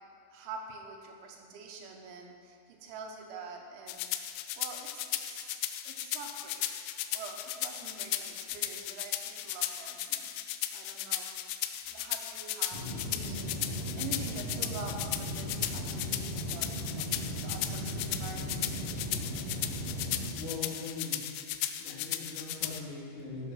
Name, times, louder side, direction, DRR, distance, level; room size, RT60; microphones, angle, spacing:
voice 1, 0.3-4.1 4.6-6.8 7.1-10.3 10.7-11.5 11.9-13.6 13.9-16.9 17.4-18.7, right 4 dB, 90° right, 2 dB, 3.7 m, -46 dB
sound 1, 3.9-22.8, left 13 dB, 85° left, 2.6 m, -36 dB
sound 2, 12.7-20.3, equal, 40° right, 3.2 m, -37 dB
voice 2, 20.4-21.2 21.7-23.5, left 4 dB, 45° left, -7 dB, 4.1 m, -41 dB
13.0 x 8.1 x 5.9 m, 2.1 s
omnidirectional pair, 5.2 m